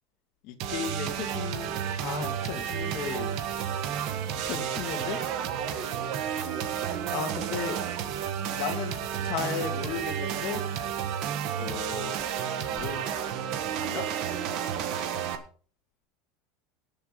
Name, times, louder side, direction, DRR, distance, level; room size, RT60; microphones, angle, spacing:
voice 1, 0.4-4.1 4.4-5.2 7.1-7.8 8.5-9.0 9.2-10.6 11.6-12.1 12.7-14.1, left 7 dB, 45° left, 3 dB, 2.4 m, -36 dB
sound 1, 0.6-15.4, right 9 dB, 45° right, 1.5 m, -31 dB
18.5 x 7.0 x 4.1 m, 0.42 s
cardioid pair, 180°, 0 cm